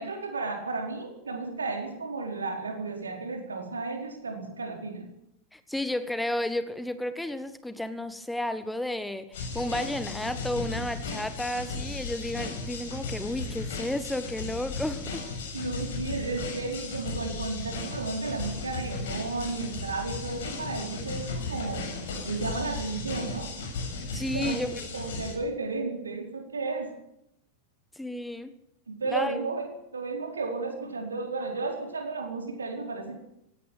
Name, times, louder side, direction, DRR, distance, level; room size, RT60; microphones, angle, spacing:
voice 1, 0.0-5.1 15.5-21.9 22.2-23.5 24.3-26.9 28.9-29.7 29.9-33.2, right 3 dB, 75° right, 4 dB, 4.7 m, -33 dB
voice 2, 5.5-15.2 24.1-24.8 28.0-28.5 29.1-29.4, left 1 dB, 5° left, 12 dB, 1.4 m, -32 dB
sound 1, 9.3-25.3, left 3 dB, 60° left, 7.2 m, -35 dB
17.0 x 17.0 x 9.3 m, 0.80 s
figure-of-eight pair, 90°, 0 cm